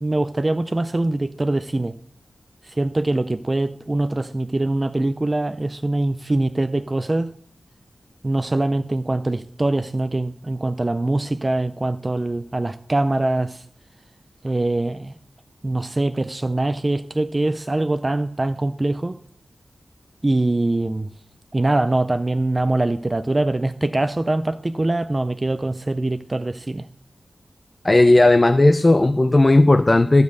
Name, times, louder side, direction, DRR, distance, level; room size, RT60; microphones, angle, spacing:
voice 1, 0.0-2.0 2.6-7.3 8.2-13.6 14.4-15.1 15.6-19.2 20.2-21.1 21.5-26.9, right 2 dB, 25° right, 0.4 m, -23 dB
voice 2, 27.8-30.2, left 2 dB, 25° left, 0.5 m, -14 dB
14.5 x 5.3 x 8.0 m
wide cardioid pair, 110°, 0 cm